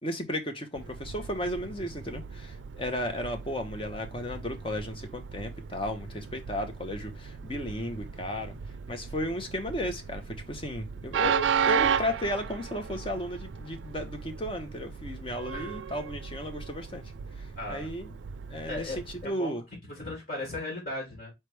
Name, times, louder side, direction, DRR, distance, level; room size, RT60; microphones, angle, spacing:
voice 1, 0.0-8.6 8.9-17.1 17.4-18.2 18.5-19.7, left 1 dB, 30° left, 0.8 m, -34 dB
Train, 0.7-19.3, right 7 dB, 80° right, 0.4 m, -35 dB
voice 2, 15.5-15.8 17.5-17.9 18.7-19.0 19.2-19.6 20.0-21.3, left 2 dB, 50° left, 2.2 m, -36 dB
4.4 x 3.2 x 3.2 m
head